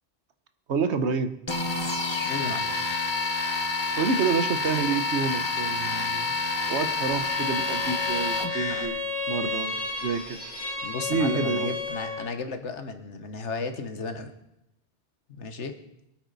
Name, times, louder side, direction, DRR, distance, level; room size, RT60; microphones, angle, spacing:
voice 1, 0.7-1.4 4.0-6.4 6.7-10.4 11.1-11.7, right 5 dB, 80° right, 9 dB, 1.2 m, -28 dB
sound 1, 1.5-8.9, left 3 dB, 25° left, 1.1 m, -28 dB
voice 2, 2.2-2.8 10.8-14.3 15.3-15.8, left 3 dB, 85° left, 8 dB, 1.5 m, -34 dB
Bowed string instrument, 7.2-12.4, left 3 dB, 5° left, 2.8 m, -32 dB
23.0 x 8.9 x 4.0 m, 0.84 s
omnidirectional pair, 1.1 m